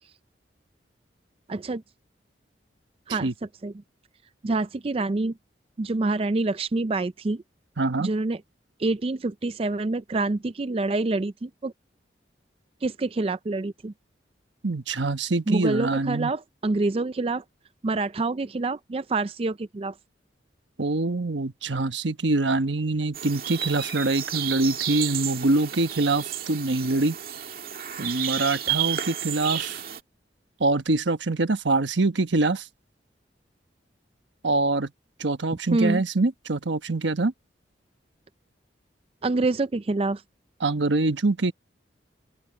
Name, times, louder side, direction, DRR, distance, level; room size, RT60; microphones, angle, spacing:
voice 1, 1.5-1.8 3.1-3.3 3.6-3.7 4.4-5.4 5.8-7.4 8.0-8.4 8.8-11.7 12.8-13.9 15.5-17.4 17.8-19.9 35.7-36.0 39.2-40.2, right 2 dB, 30° right, 0.4 m, -26 dB
voice 2, 7.8-8.1 14.6-16.3 20.8-27.2 28.0-29.8 30.6-32.7 34.4-34.9 35.2-37.3 40.6-41.5, right 2 dB, 90° right, 1.2 m, -24 dB
sound 1, 23.1-30.0, right 10 dB, 50° right, 2.3 m, -31 dB
open air
head